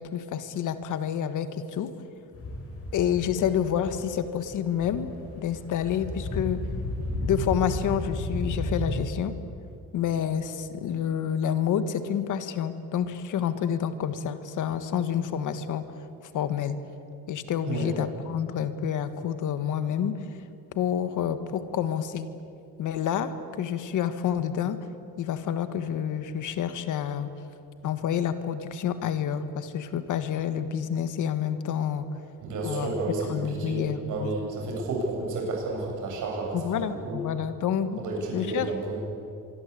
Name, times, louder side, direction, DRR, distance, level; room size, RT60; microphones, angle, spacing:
voice 1, 0.0-1.9 2.9-6.6 7.2-9.3 9.9-15.8 16.3-16.8 17.3-20.4 20.7-22.3 22.8-24.8 25.2-27.3 27.8-32.1 32.6-32.9 33.3-34.3 36.5-38.0 38.3-38.7, left 9 dB, 60° left, 11 dB, 1.6 m, -28 dB
sound 1, 2.3-9.0, left 1 dB, 40° left, 5.8 m, -33 dB
voice 2, 32.4-37.2 38.0-39.0, right 3 dB, 60° right, -1 dB, 7.9 m, -31 dB
25.5 x 23.0 x 8.6 m, 2.6 s
cardioid pair, 165°, 35 cm